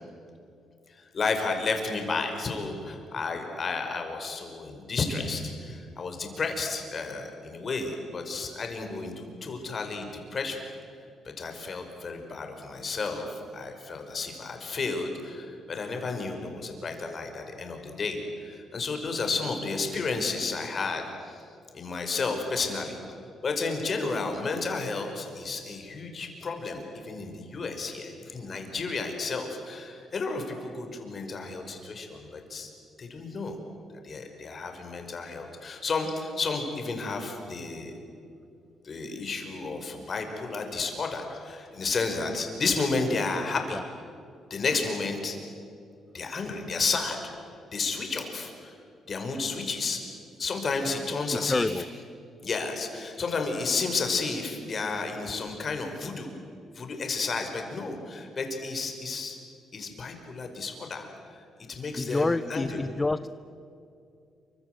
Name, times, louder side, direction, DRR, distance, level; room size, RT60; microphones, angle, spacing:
voice 1, 0.9-10.6 11.4-21.4 21.7-23.2 23.4-32.7 33.0-33.6 34.0-37.9 38.8-43.8 44.5-45.4 46.1-47.2 47.7-48.8 49.1-50.0 50.4-51.7 52.4-56.3 56.7-59.4 59.7-62.8, left 4 dB, 45° left, 4 dB, 5.4 m, -32 dB
voice 2, 51.3-51.9 62.0-63.3, left 2 dB, 20° left, 13 dB, 0.6 m, -28 dB
28.5 x 25.0 x 8.1 m, 2.5 s
cardioid pair, 90°, 0 cm